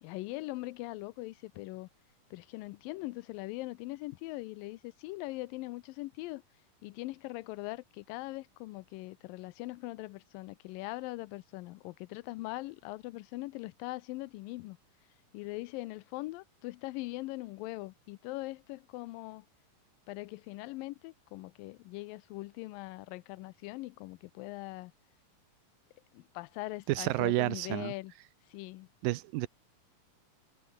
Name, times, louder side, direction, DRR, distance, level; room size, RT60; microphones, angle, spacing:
voice 1, 0.0-1.9 2.3-6.4 6.8-14.8 15.3-19.5 20.1-24.9 26.1-28.1 28.5-28.9, left 20 dB, 90° left, 2.4 m, -41 dB
voice 2, 26.9-27.9 29.0-29.5, right 18 dB, 85° right, 2.5 m, -30 dB
omnidirectional pair, 3.9 m